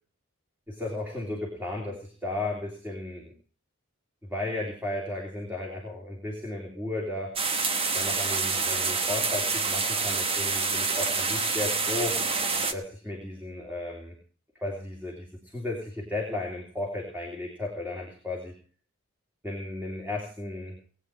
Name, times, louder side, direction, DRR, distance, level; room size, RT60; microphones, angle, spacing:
voice 1, 0.7-3.3 4.2-7.4 7.9-12.2 12.7-14.2 14.6-18.5 19.4-20.8, left 2 dB, 10° right, -1 dB, 3.1 m, -34 dB
sound 1, 7.4-12.7, right 4 dB, 25° right, 1.0 m, -27 dB
19.0 x 9.1 x 4.8 m, 0.41 s
head